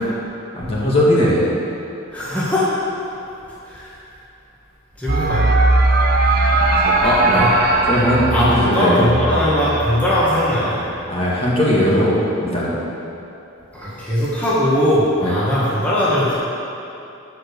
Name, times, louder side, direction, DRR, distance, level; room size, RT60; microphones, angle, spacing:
voice 1, 0.6-1.5 6.9-7.4 7.9-9.1 11.1-12.7 15.2-15.3, equal, 30° left, -6 dB, 1.9 m, -18 dB
voice 2, 2.1-2.8 3.6-4.0 5.0-5.5 7.3-7.5 8.3-10.8 13.7-16.3, left 1 dB, 5° left, -9 dB, 1.7 m, -19 dB
sound 1, 5.1-11.0, right 2 dB, 45° right, 0.8 m, -19 dB
13.0 x 5.0 x 6.8 m, 2.8 s
head